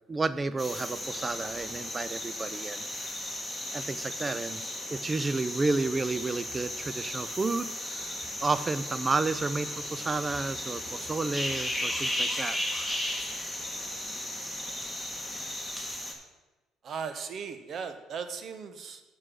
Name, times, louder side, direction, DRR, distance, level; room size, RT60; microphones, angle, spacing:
voice 1, 0.1-2.8 3.7-4.6 4.9-12.6, right 3 dB, 25° right, 15 dB, 0.5 m, -31 dB
sound 1, 0.6-16.1, left 1 dB, ahead, 1.7 m, -35 dB
voice 2, 16.8-19.0, right 6 dB, 50° right, 9 dB, 1.0 m, -37 dB
7.4 x 6.5 x 6.2 m, 1.1 s
supercardioid pair, 90°, 0 cm